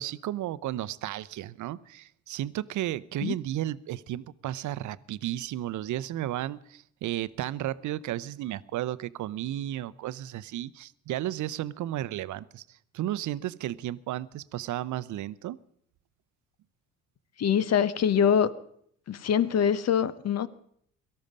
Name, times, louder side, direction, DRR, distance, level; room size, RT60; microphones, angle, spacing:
voice 1, 0.0-12.6 12.9-15.6, right 13 dB, 60° right, 17 dB, 0.7 m, -33 dB
voice 2, 17.4-18.5 19.1-20.5, left 8 dB, 50° left, 17 dB, 0.9 m, -24 dB
18.0 x 13.0 x 5.3 m, 0.67 s
supercardioid pair, 65°, 34 cm